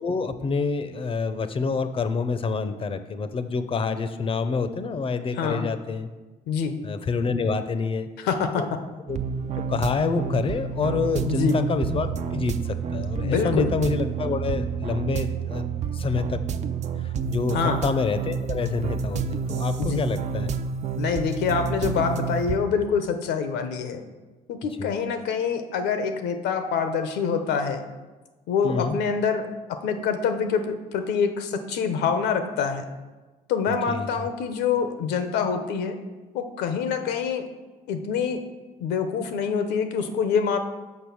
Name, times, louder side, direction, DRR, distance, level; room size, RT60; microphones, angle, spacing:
voice 1, 0.0-6.1 6.8-8.1 8.6-8.7 9.1-9.2 9.7-15.6 15.9-16.7 17.0-17.6 17.8-20.5 24.8-24.9 28.6-29.0 33.9-34.3, left 4 dB, 30° left, 10 dB, 0.6 m, -27 dB
voice 2, 8.2-8.8 11.2-11.6 13.2-13.7 17.5-17.8 19.8-20.0 21.0-24.0 24.5-27.8 28.5-29.5 29.8-32.8 33.5-36.0 36.3-37.4 37.9-38.4 38.8-40.6, left 6 dB, 80° left, 8 dB, 0.9 m, -25 dB
sound 1, 9.1-22.6, right 6 dB, 45° right, 0.5 m, -29 dB
6.4 x 5.5 x 7.0 m, 1.2 s
cardioid pair, 110°, 17 cm